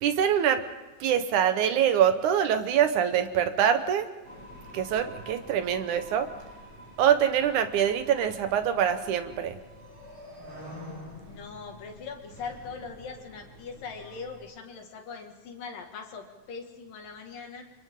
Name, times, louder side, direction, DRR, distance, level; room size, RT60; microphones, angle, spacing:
voice 1, 0.0-0.6 1.0-4.1 4.7-6.3 7.0-9.6, right 9 dB, 70° right, 9 dB, 2.3 m, -24 dB
sound 1, 4.2-14.4, equal, 45° right, 8.0 m, -47 dB
voice 2, 11.3-17.6, left 5 dB, 80° left, 3 dB, 3.7 m, -41 dB
30.0 x 25.5 x 3.8 m, 1.1 s
omnidirectional pair, 3.8 m